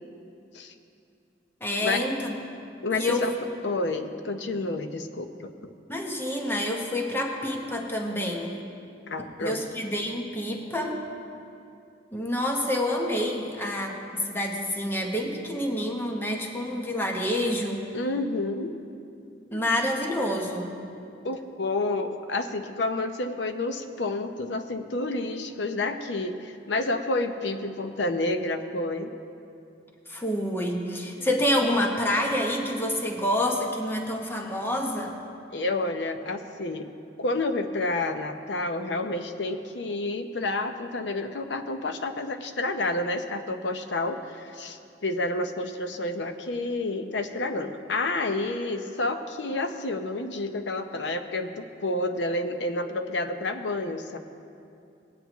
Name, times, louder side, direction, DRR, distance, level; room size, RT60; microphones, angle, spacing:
voice 1, 1.6-2.4 2.9-3.3 5.9-8.6 9.4-11.0 12.1-17.8 19.5-20.8 30.1-35.2, left 1 dB, 15° left, 1 dB, 1.0 m, -28 dB
voice 2, 2.8-3.3 3.6-5.5 9.1-9.6 17.9-18.8 19.5-19.6 21.2-29.1 31.2-31.3 35.5-36.9 37.2-54.2, left 2 dB, 70° left, 7 dB, 0.7 m, -29 dB
19.0 x 9.3 x 3.0 m, 2.5 s
head